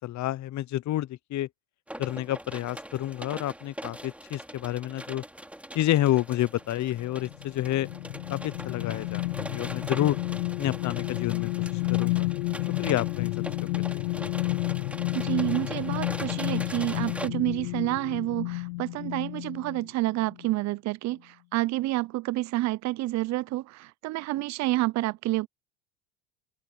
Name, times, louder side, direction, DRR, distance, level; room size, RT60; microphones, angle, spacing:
voice 1, 0.0-1.5 2.0-5.2 5.7-7.9 8.3-10.2 10.6-12.3 12.8-13.3 13.9-14.0, left 14 dB, 40° left, 0.9 m, -29 dB
sound 1, 1.9-17.3, right 1 dB, 5° right, 3.8 m, -41 dB
sound 2, 7.2-19.9 20.3-20.5, left 21 dB, 80° left, 1.9 m, -31 dB
voice 2, 15.1-25.5, right 17 dB, 40° right, 0.6 m, -29 dB
open air
hypercardioid pair, 85°, 43 cm